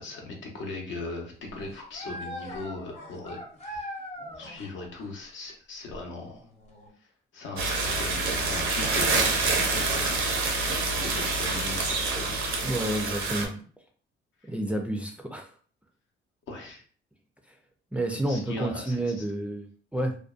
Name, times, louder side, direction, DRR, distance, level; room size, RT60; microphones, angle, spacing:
voice 1, 0.0-4.0 4.4-6.5 7.0-10.3 10.6-12.4 14.4-14.5 16.5-16.8 18.3-19.2, left 2 dB, 75° left, 0 dB, 0.8 m, -39 dB
sound 1, 1.3-4.7 5.0-5.1 5.9-6.9, equal, 35° left, 0.8 m, -41 dB
sound 2, 7.6-13.4, right 3 dB, 85° right, 0.6 m, -27 dB
voice 2, 12.6-13.5 14.5-15.5 17.9-20.2, right 1 dB, 5° right, 3 dB, 0.3 m, -30 dB
2.5 x 2.2 x 2.4 m, 0.43 s
cardioid pair, 90°, 20 cm